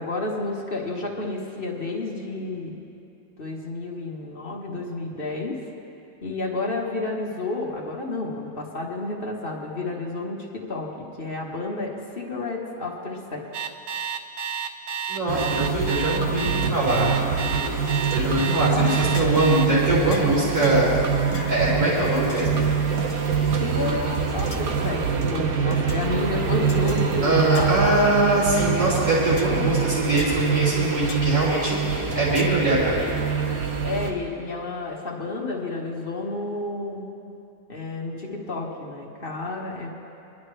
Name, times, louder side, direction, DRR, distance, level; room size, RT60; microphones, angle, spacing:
voice 1, 0.0-2.7 3.4-5.6 6.2-10.9 11.2-13.5 18.4-18.9 23.6-27.7 33.8-37.1 37.7-39.9, left 2 dB, 30° left, -2 dB, 1.4 m, -31 dB
Alarm, 13.5-19.7, right 7 dB, 85° right, 0.6 m, -30 dB
voice 2, 15.1-17.2 18.1-20.9 21.5-22.7 27.2-33.1, right 1 dB, 20° right, -8 dB, 3.2 m, -23 dB
sound 1, 15.3-34.1, right 6 dB, 55° right, 1.2 m, -25 dB
sound 2, 19.1-19.5 20.1-20.3 20.6-20.9 21.3-21.6 22.3-22.5 23.1-23.5 24.1-24.7 25.1-25.4 25.9-26.1 26.7-27.0 27.5-27.8 28.6-28.7 29.4-29.6 30.2-30.4 31.1-31.3 32.4-32.7, left 4 dB, 60° left, 2.0 m, -40 dB
24.0 x 11.0 x 3.3 m, 2.6 s
omnidirectional pair, 2.2 m